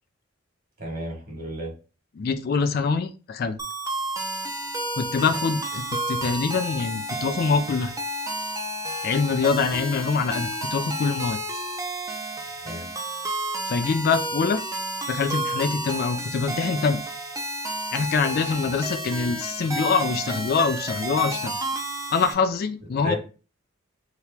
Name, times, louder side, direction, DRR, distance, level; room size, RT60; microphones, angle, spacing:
voice 1, 0.8-1.7 12.6-12.9 23.0-23.2, equal, 50° right, -1 dB, 1.5 m, -33 dB
voice 2, 2.2-3.6 4.9-7.9 9.0-11.4 13.7-14.6 15.1-17.0 17.9-21.6 22.1-23.2, left 5 dB, 50° left, 10 dB, 0.3 m, -24 dB
sound 1, 3.6-22.3, right 1 dB, 15° right, 0.5 m, -31 dB
2.9 x 2.9 x 3.3 m, 0.34 s
head